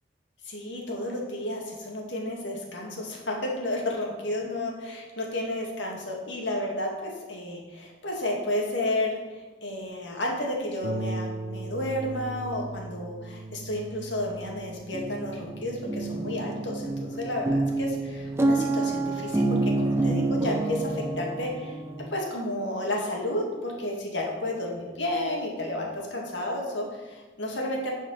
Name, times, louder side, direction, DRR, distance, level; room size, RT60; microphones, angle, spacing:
voice 1, 0.5-21.8 22.1-27.9, left 1 dB, 85° left, -1 dB, 2.2 m, -32 dB
Harp, 10.8-20.0 20.8-20.9 21.4-21.5, right 2 dB, 65° right, 0.6 m, -39 dB
sound 1, 14.9-22.1, right 2 dB, 15° right, 0.7 m, -28 dB
9.9 x 5.1 x 5.7 m, 1.2 s
head